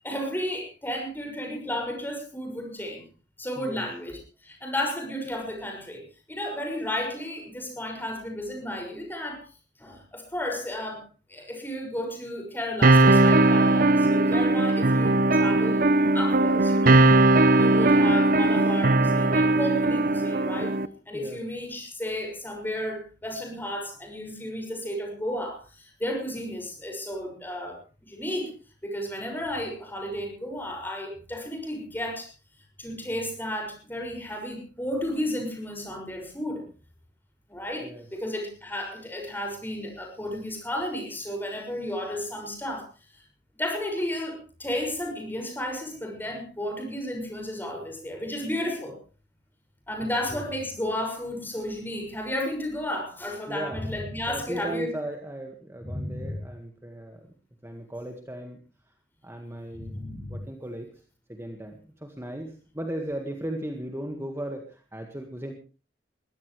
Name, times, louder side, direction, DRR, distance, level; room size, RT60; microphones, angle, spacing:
voice 1, 0.0-3.0 3.4-6.0 6.3-9.4 9.8-15.8 16.1-17.1 17.5-20.8 21.1-28.5 28.8-32.3 32.8-36.6 37.5-42.9 43.1-43.2 43.6-49.0 49.9-54.9 55.9-56.3 59.7-60.3, left 1 dB, 10° left, 2 dB, 6.4 m, -33 dB
voice 2, 3.6-3.9 21.1-21.4 37.8-38.1 50.3-50.4 53.5-53.9 54.3-57.3 57.6-58.6 59.2-60.0 60.3-61.0 61.3-65.5, right 1 dB, 15° right, 4 dB, 1.8 m, -37 dB
sound 1, 12.8-20.9, right 2 dB, 50° right, 0.9 m, -19 dB
22.0 x 16.0 x 3.3 m, 0.34 s
head